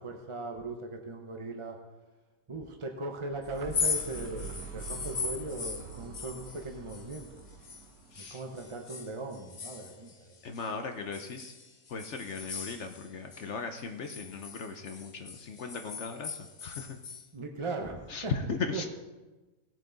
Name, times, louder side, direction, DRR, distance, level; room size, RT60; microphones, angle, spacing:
voice 1, 0.0-1.8 2.5-7.3 8.2-10.4 17.3-18.3 18.7-18.9, right 2 dB, 35° right, 3 dB, 0.5 m, -39 dB
sound 1, 3.2-9.0, right 6 dB, 75° right, 1.4 m, -46 dB
sound 2, 3.6-7.8 8.1-10.7 11.1-13.5 13.8-17.3, left 5 dB, 80° left, 0.4 m, -38 dB
voice 2, 8.1-8.4 10.4-11.5 11.9-17.0 18.1-18.9, left 5 dB, 60° left, 6 dB, 0.8 m, -37 dB
18.0 x 7.6 x 3.9 m, 1.2 s
omnidirectional pair, 1.9 m